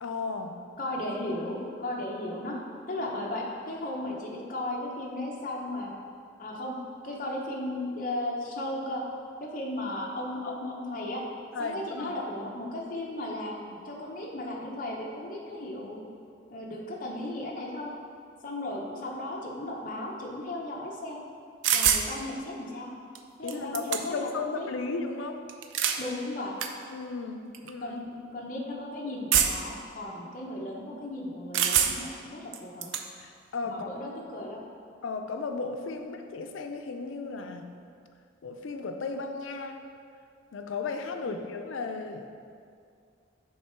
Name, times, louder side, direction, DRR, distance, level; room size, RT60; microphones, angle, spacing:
voice 1, 0.0-0.5 10.4-10.5 11.5-12.1 23.4-25.4 26.9-28.0 33.2-33.9 35.0-37.7 38.4-39.8 40.5-42.3, left 4 dB, 90° left, 6 dB, 0.5 m, -35 dB
voice 2, 0.8-2.6 2.9-5.9 6.4-6.8 7.0-9.0 9.4-11.2 11.6-16.0 16.5-17.9 18.4-21.2 21.7-22.9 23.4-24.7 26.0-26.5 27.8-32.9 33.6-34.6 41.2-41.4, left 1 dB, 45° left, -2 dB, 0.8 m, -35 dB
sound 1, 21.6-22.1 23.1-23.2 23.5-24.3 25.5-26.0 26.6-26.7 27.5-27.7 29.3-29.7 31.5-32.1 32.5-33.0, right 8 dB, 80° right, 0.4 m, -25 dB
6.4 x 3.6 x 4.5 m, 2.3 s
head